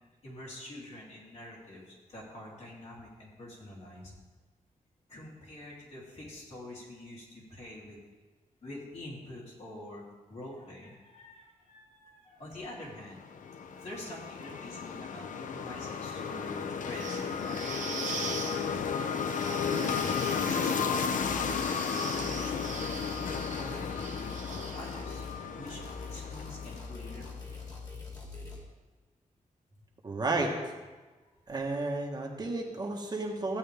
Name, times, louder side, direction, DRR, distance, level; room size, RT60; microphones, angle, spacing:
voice 1, 0.2-4.1 5.1-8.0 8.6-13.2 13.8-18.8 20.1-23.0 23.5-27.6, left 1 dB, 55° left, -5 dB, 3.3 m, -46 dB
sound 1, 13.0-27.3, left 6 dB, 75° left, 0.7 m, -34 dB
sound 2, 16.9-25.2, right 4 dB, 70° right, 1.1 m, -42 dB
sound 3, 21.2-21.7 22.1-25.4 25.7-28.6, left 4 dB, 30° left, 2.5 m, -43 dB
voice 2, 30.0-30.7 31.5-33.6, right 2 dB, 30° right, 0 dB, 1.3 m, -32 dB
15.0 x 8.6 x 3.5 m, 1.3 s
wide cardioid pair, 145°, 13 cm